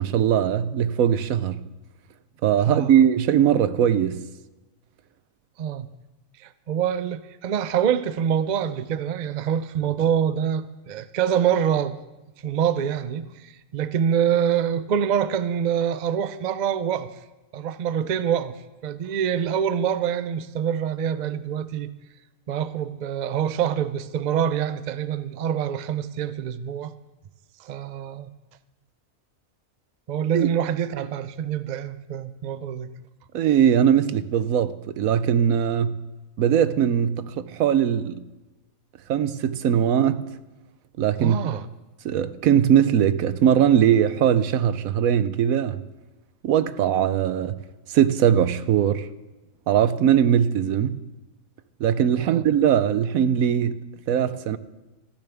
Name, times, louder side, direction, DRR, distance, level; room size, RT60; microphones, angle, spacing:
voice 1, 0.0-1.6 2.4-4.2 30.3-30.5 33.3-36.0 36.4-38.2 39.1-40.3 41.0-41.4 42.0-45.8 46.4-47.5 47.9-49.1 49.7-51.0 51.8-53.8 54.1-54.6, right 9 dB, 85° right, 1.1 m, -20 dB
voice 2, 2.6-3.0 5.6-5.9 6.4-12.0 12.4-17.1 17.5-21.9 22.5-26.9 27.6-28.3 30.1-32.9 41.2-41.7 52.2-52.4, right 8 dB, 50° right, 0.5 m, -25 dB
28.0 x 10.5 x 3.5 m
omnidirectional pair, 1.4 m